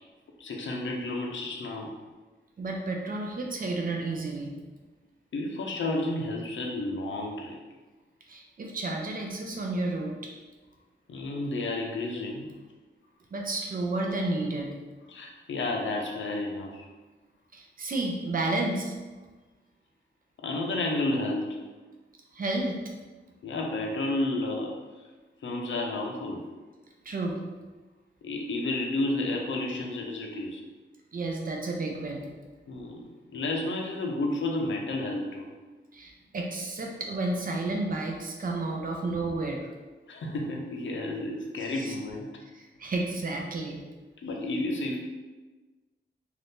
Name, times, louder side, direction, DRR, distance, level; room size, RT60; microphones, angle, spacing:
voice 1, 0.4-1.9 5.3-7.6 11.1-12.5 15.1-16.9 20.4-21.6 23.4-24.7 25.4-26.4 28.2-30.6 32.7-33.0 33.3-35.5 40.1-42.3 44.2-45.0, left 2 dB, 75° left, 1 dB, 0.5 m, -31 dB
voice 2, 2.6-4.5 8.3-10.3 13.3-14.7 17.5-18.9 22.3-22.8 27.1-27.4 31.1-32.3 35.9-39.7 41.6-41.9 42.5-43.8, right 2 dB, 45° right, 1 dB, 0.5 m, -31 dB
2.7 x 2.4 x 3.5 m, 1.3 s
wide cardioid pair, 130°, 20 cm